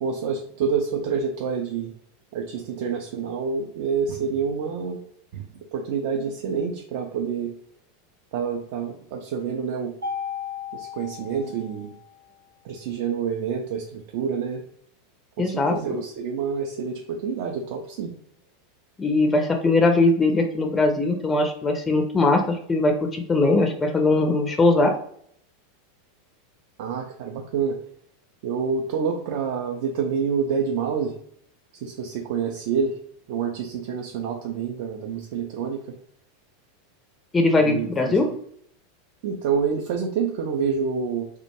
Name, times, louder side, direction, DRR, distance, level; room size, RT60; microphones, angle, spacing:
voice 1, 0.0-1.9 2.3-5.0 5.3-5.5 5.7-7.5 8.3-9.9 10.7-11.9 12.6-14.6 15.4-18.1 26.8-27.7 28.4-31.1 31.8-32.9 33.3-35.8 37.6-38.4 39.2-41.3, right 6 dB, 55° right, 0 dB, 0.3 m, -27 dB
Mallet percussion, 10.0-12.3, left 6 dB, 85° right, 0.8 m, -35 dB
voice 2, 15.4-16.0 19.0-24.9 37.3-38.3, left 2 dB, 20° left, 4 dB, 0.4 m, -20 dB
2.2 x 2.1 x 2.8 m, 0.65 s
figure-of-eight pair, 90°, 0 cm